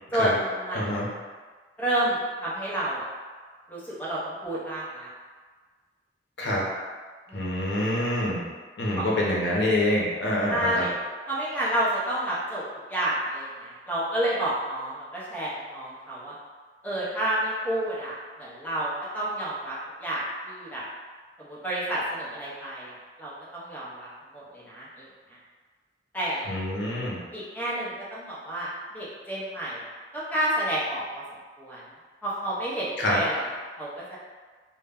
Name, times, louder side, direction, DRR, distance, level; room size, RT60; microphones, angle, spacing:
voice 1, 0.1-1.1 1.8-3.1 3.7-5.1 7.3-7.5 8.9-9.1 10.5-10.9 11.3-12.6 12.9-16.3 16.8-20.8 21.4-24.1 24.3-25.1 26.1-26.6 27.3-29.9 30.1-31.2 31.6-31.8 32.2-33.5 33.8-34.2, right 1 dB, 10° left, -8 dB, 0.6 m, -30 dB
voice 2, 0.7-1.1 6.4-6.6 7.3-8.4 8.8-10.8 26.5-27.2 33.0-33.2, left 1 dB, 80° left, -4 dB, 0.7 m, -26 dB
2.1 x 2.1 x 3.5 m, 1.5 s
head